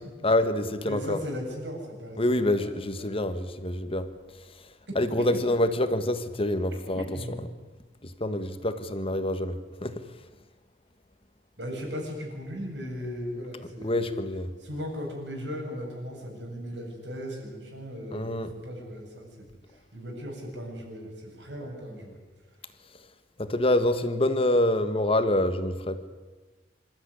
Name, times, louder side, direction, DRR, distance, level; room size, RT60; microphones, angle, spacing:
voice 1, 0.2-1.2 2.2-4.1 4.9-7.0 8.0-10.0 13.8-14.5 18.1-18.5 23.4-26.1, left 1 dB, 35° left, 10 dB, 1.5 m, -26 dB
voice 2, 0.9-2.7 3.0-3.4 4.9-5.2 5.5-5.6 6.9-7.4 11.6-14.1 14.6-22.2, equal, 85° right, 0 dB, 7.6 m, -37 dB
26.5 x 13.0 x 9.9 m, 1.3 s
head